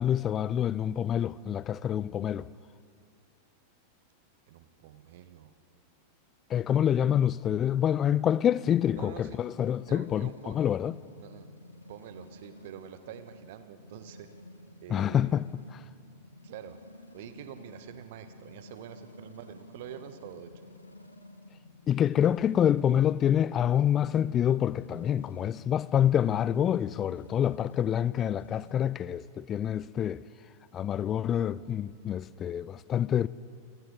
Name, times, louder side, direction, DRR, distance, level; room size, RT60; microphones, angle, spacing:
voice 1, 0.0-2.5 6.5-10.9 14.9-15.8 21.9-30.2 30.7-33.3, left 10 dB, 25° left, 0.4 m, -27 dB
voice 2, 4.5-5.5 8.9-9.4 9.9-10.6 11.2-11.5 11.9-14.3 14.8-15.4 16.4-16.8 17.1-20.5, right 10 dB, 50° right, 1.3 m, -46 dB
sound 1, 8.9-28.7, left 2 dB, 80° left, 1.2 m, -51 dB
29.0 x 23.5 x 4.1 m
figure-of-eight pair, 90°, 0 cm